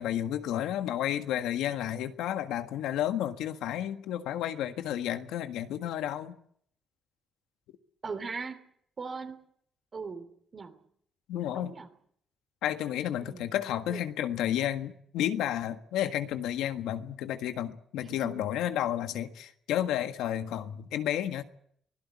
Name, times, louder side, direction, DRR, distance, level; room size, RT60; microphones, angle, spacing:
voice 1, 0.0-6.3 11.3-11.7 12.6-21.4, left 11 dB, 90° left, 1.6 m, -31 dB
voice 2, 8.0-8.6 9.0-9.4 9.9-10.3 10.5-10.8 11.5-11.9 13.2-13.5 13.9-14.0 18.1-18.4, right 4 dB, 40° right, 3.2 m, -39 dB
24.5 x 17.0 x 8.5 m
cardioid pair, 90°, 0 cm